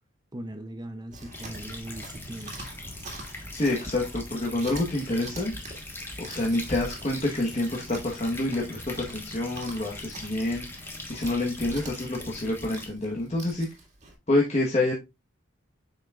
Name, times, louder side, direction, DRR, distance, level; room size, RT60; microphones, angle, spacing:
voice 1, 0.3-2.6, right 1 dB, 20° right, 0.5 m, -39 dB
Chewing mastication, 1.1-14.1, right 2 dB, 35° right, 1.9 m, -45 dB
sound 1, 1.3-12.9, left 2 dB, 10° left, 1.2 m, -41 dB
voice 2, 3.5-5.5 6.2-13.7 14.3-14.9, left 2 dB, 35° left, 1.1 m, -27 dB
7.4 x 5.6 x 2.4 m
head